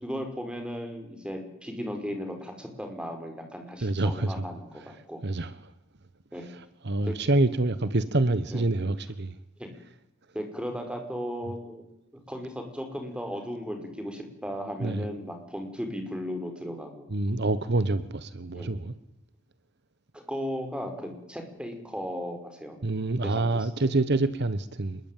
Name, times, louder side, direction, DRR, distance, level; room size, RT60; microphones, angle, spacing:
voice 1, 0.0-5.2 6.3-6.5 7.1-7.2 8.5-8.7 9.6-9.7 10.3-11.9 12.3-17.1 18.5-18.8 20.1-22.8 23.2-23.9, equal, 5° right, 5.1 m, -36 dB
voice 2, 3.8-4.4 5.2-5.6 6.4-9.3 14.8-15.0 17.1-18.9 22.8-25.0, right 2 dB, 55° right, 1.1 m, -27 dB
26.5 x 21.5 x 9.2 m
head